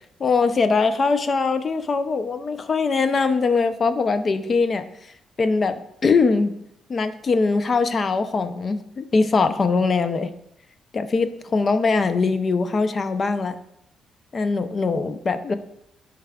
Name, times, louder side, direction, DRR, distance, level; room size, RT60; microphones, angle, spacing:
voice 1, 0.2-4.8 5.4-6.5 6.9-10.3 10.9-13.5 14.3-15.5, left 4 dB, 40° left, 10 dB, 0.6 m, -22 dB
11.0 x 4.7 x 2.4 m, 0.76 s
cardioid pair, 90°, 0 cm